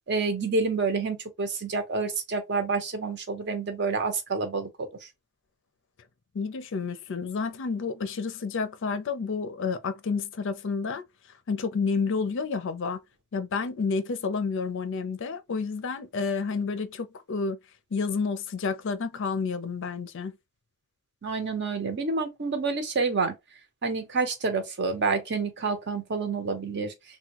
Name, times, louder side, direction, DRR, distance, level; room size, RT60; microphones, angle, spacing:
voice 1, 0.1-5.1 21.2-23.3 23.8-26.9, right 4 dB, 50° right, 0.7 m, -28 dB
voice 2, 6.3-11.0 11.5-13.0 13.3-17.6 17.9-20.3, left 5 dB, 55° left, 0.4 m, -30 dB
3.4 x 2.2 x 2.9 m
head